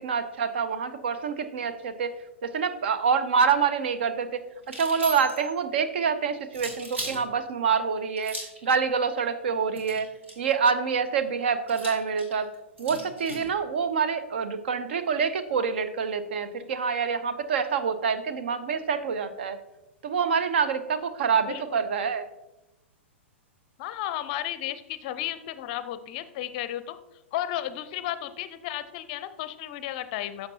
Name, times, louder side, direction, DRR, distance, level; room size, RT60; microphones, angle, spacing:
voice 1, 0.0-2.1 2.4-8.3 8.6-10.1 10.4-12.5 12.8-19.6 20.0-22.2, right 6 dB, 55° right, 11 dB, 0.7 m, -26 dB
sound 1, 4.6-5.5 6.5-7.2 8.2-8.6 9.7-10.5 11.7-13.5, right 1 dB, 75° right, 2.2 m, -38 dB
voice 2, 21.4-21.8 23.8-27.0 27.3-30.5, left 13 dB, 40° left, 13 dB, 0.5 m, -33 dB
11.0 x 6.8 x 2.7 m, 0.97 s
figure-of-eight pair, 105°, 7 cm